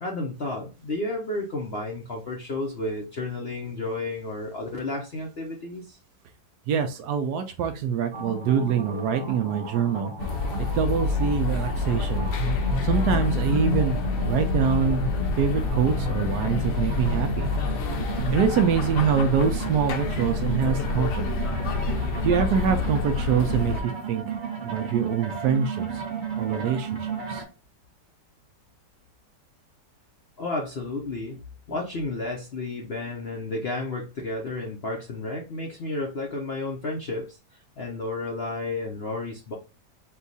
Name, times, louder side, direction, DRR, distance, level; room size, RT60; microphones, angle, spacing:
voice 1, 0.0-6.0 30.4-31.4 31.7-37.4 37.8-39.5, left 2 dB, 55° left, 0 dB, 0.7 m, -32 dB
voice 2, 6.7-10.1 10.6-12.3 12.8-15.1 15.4-17.5 18.3-21.3 22.2-24.2 24.6-25.8 26.4-27.0 27.3-27.4, right 7 dB, 70° right, 7 dB, 1.1 m, -25 dB
sound 1, 8.1-27.4, right 3 dB, 35° right, 0.9 m, -33 dB
sound 2, 10.2-23.8, left 4 dB, 70° left, 1.2 m, -27 dB
4.5 x 2.3 x 4.0 m, 0.31 s
omnidirectional pair, 1.9 m